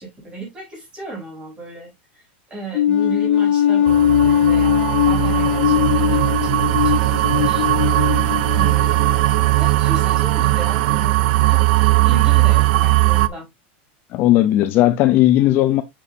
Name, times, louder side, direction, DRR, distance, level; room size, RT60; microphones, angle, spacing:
voice 1, 0.0-2.2 2.5-7.6 8.5-9.1 9.6-11.2 11.5-13.5, right 2 dB, 15° right, 4.8 m, -34 dB
sound 1, 2.7-9.1, left 10 dB, 80° left, 1.1 m, -19 dB
sound 2, 3.9-13.3, right 17 dB, 60° right, 0.6 m, -18 dB
voice 2, 14.1-15.8, left 14 dB, 35° left, 0.6 m, -16 dB
7.1 x 6.8 x 2.7 m
supercardioid pair, 165°, 6 cm